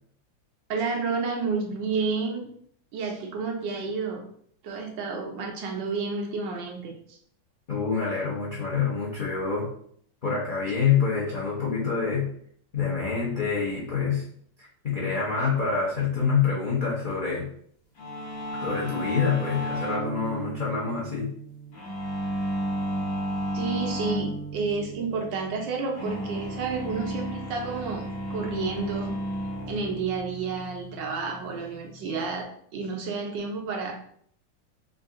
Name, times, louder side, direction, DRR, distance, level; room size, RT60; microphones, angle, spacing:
voice 1, 0.7-2.5 2.9-4.2 4.6-7.2 23.5-28.0 28.3-29.1 29.7-34.0, right 4 dB, 75° right, 2 dB, 1.4 m, -30 dB
voice 2, 7.7-9.7 10.2-12.3 12.7-14.2 14.6-17.5 18.5-21.3, left 5 dB, 80° left, -5 dB, 0.4 m, -26 dB
sound 1, 18.0-32.4, right 1 dB, 50° left, 1.5 m, -34 dB
3.7 x 2.5 x 3.6 m, 0.63 s
omnidirectional pair, 2.1 m